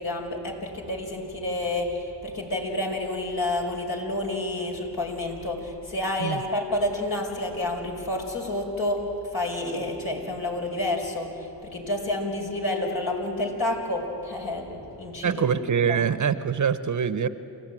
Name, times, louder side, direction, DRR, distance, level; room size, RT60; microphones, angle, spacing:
voice 1, 0.0-15.6 15.9-16.1, left 1 dB, 60° left, 0 dB, 5.5 m, -29 dB
voice 2, 15.2-17.3, right 7 dB, 45° right, 13 dB, 1.0 m, -24 dB
29.0 x 15.0 x 9.1 m, 2.9 s
supercardioid pair, 65°, 42 cm